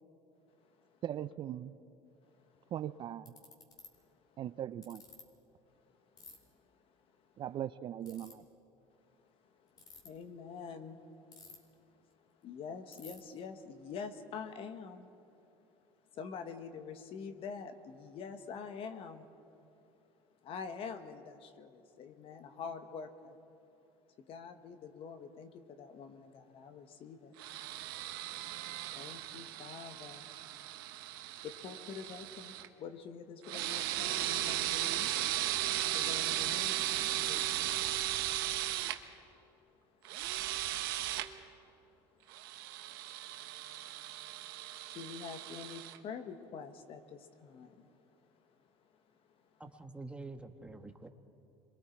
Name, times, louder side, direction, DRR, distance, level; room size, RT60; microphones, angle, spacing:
voice 1, 1.0-1.7 2.7-3.3 4.4-5.0 7.4-8.4, right 11 dB, 45° right, 13 dB, 0.5 m, -39 dB
Ratchet pawl, 2.6-2.7 3.3-3.9 4.8-5.2 6.2-6.4 8.0-8.3 9.7-10.1 11.3-11.8 12.1-12.2 12.4-12.5 12.9-13.2, left 4 dB, 35° left, 3.5 m, -52 dB
voice 2, 10.0-11.0 11.3-11.4 12.1-12.2 12.4-15.1 16.1-19.3 20.4-23.4 24.3-27.3 28.9-30.3 31.4-35.2 35.9-38.0 40.2-40.6 41.0-41.1 42.1-42.3 44.9-47.9 49.3-49.4, left 6 dB, 55° left, 8 dB, 1.5 m, -46 dB
sound 1, 27.4-32.7 33.4-39.0 40.0-41.3 42.3-46.0, right 14 dB, 90° right, 1.0 m, -36 dB
voice 3, 49.6-51.1, right 3 dB, 10° right, 6 dB, 1.4 m, -47 dB
27.5 x 22.5 x 4.6 m, 2.8 s
supercardioid pair, 100°, 12 cm